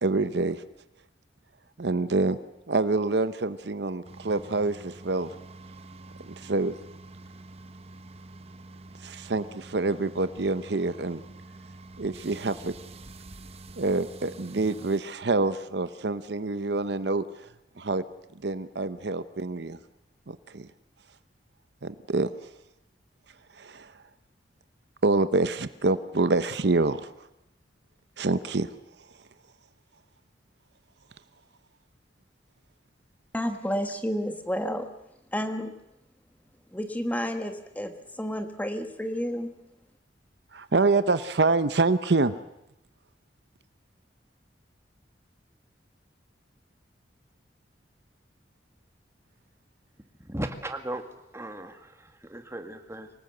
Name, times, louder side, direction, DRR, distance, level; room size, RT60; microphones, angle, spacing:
voice 1, 0.0-0.6 1.8-2.4 2.7-5.3 6.4-6.7 9.0-11.2 12.0-12.7 13.8-17.2 17.8-18.0 18.4-19.8 20.3-20.7 21.8-22.3 23.6-23.9 25.0-27.1 28.2-28.7 40.5-42.3, right 3 dB, 65° right, 0.8 m, -26 dB
sound 1, 4.0-15.0, right 2 dB, 35° right, 1.1 m, -47 dB
voice 2, 33.3-34.9 35.3-35.8 36.7-39.5, equal, 10° left, 1.3 m, -31 dB
voice 3, 50.2-51.0 51.3-53.2, right 1 dB, 15° right, 1.8 m, -37 dB
25.0 x 18.5 x 7.9 m
head